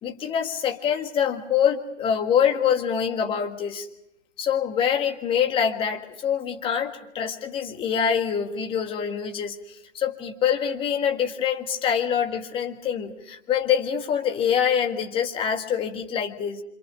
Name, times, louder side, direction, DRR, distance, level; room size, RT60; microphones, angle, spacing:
voice 1, 0.0-3.9 4.4-16.6, left 8 dB, 15° left, 4 dB, 1.6 m, -25 dB
27.0 x 26.5 x 5.0 m, 0.82 s
hypercardioid pair, 140°, 39 cm